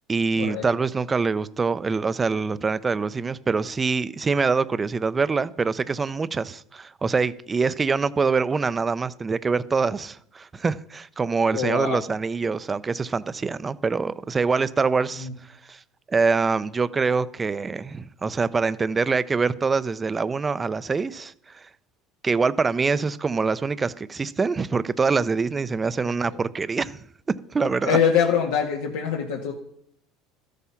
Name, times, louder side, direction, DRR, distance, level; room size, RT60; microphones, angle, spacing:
voice 1, 0.1-15.3 15.7-15.8 16.1-21.7 22.2-27.0 27.5-28.0, right 4 dB, 20° right, 0.5 m, -24 dB
voice 2, 11.5-12.0 15.2-15.3 27.9-29.5, left 7 dB, 90° left, 1.7 m, -23 dB
13.5 x 8.4 x 5.7 m
supercardioid pair, 125°, 0 cm